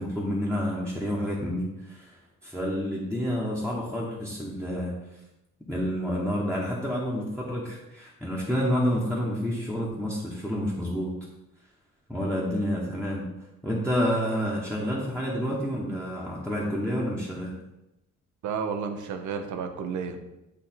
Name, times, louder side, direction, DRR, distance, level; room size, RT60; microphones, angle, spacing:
voice 1, 0.0-2.1 2.4-4.9 5.7-11.1 12.1-13.3 13.6-17.5, equal, 5° left, -6 dB, 1.2 m, -29 dB
voice 2, 18.4-20.2, right 6 dB, 75° right, 7 dB, 0.8 m, -31 dB
8.1 x 2.7 x 4.4 m, 0.92 s
cardioid pair, 90°, 30 cm